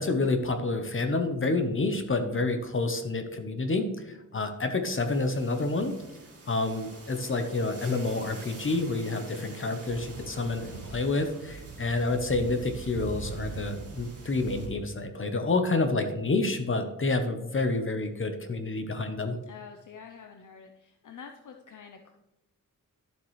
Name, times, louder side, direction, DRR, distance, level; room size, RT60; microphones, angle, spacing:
voice 1, 0.0-5.9 6.5-19.4, left 3 dB, 40° left, 7 dB, 0.9 m, -28 dB
sound 1, 4.8-14.7, right 2 dB, 45° right, 2.3 m, -48 dB
Speech / Wind, 9.9-14.8, right 6 dB, 70° right, 0.6 m, -42 dB
voice 2, 19.5-22.1, left 6 dB, 65° left, 4 dB, 0.8 m, -47 dB
11.5 x 7.4 x 3.2 m, 0.99 s
wide cardioid pair, 170°, 33 cm